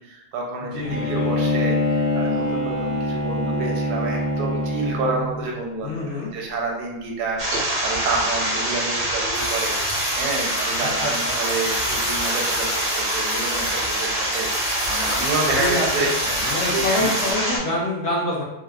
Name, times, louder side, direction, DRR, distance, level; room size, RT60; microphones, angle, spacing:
voice 1, 0.0-16.1 16.4-17.1, right 3 dB, 90° right, 0 dB, 1.2 m, -29 dB
voice 2, 0.6-1.3 5.8-6.3 10.8-11.6 15.6-18.4, left 1 dB, 60° left, -6 dB, 0.8 m, -27 dB
Bowed string instrument, 0.8-5.5, left 1 dB, 30° left, 0.8 m, -24 dB
sound 1, 7.4-17.6, right 1 dB, 55° right, 0.5 m, -25 dB
sound 2, 9.3-17.3, left 2 dB, 90° left, 1.4 m, -33 dB
3.3 x 2.1 x 2.3 m, 0.95 s
omnidirectional pair, 1.6 m